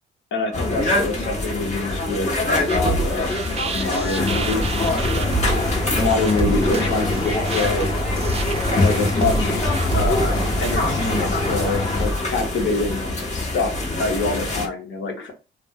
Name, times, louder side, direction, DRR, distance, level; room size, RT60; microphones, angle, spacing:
voice 1, 0.3-3.4 3.7-5.0 5.9-7.9 8.8-13.0 13.3-15.3, left 3 dB, 70° left, 3 dB, 1.0 m, -26 dB
sound 1, 0.5-14.7, left 2 dB, 35° left, 1.2 m, -24 dB
sound 2, 2.7-10.7, right 6 dB, 30° right, 0.3 m, -29 dB
sound 3, 4.2-12.1, left 1 dB, 20° left, 1.0 m, -26 dB
2.4 x 2.2 x 3.6 m, 0.31 s
cardioid pair, 90°, 20 cm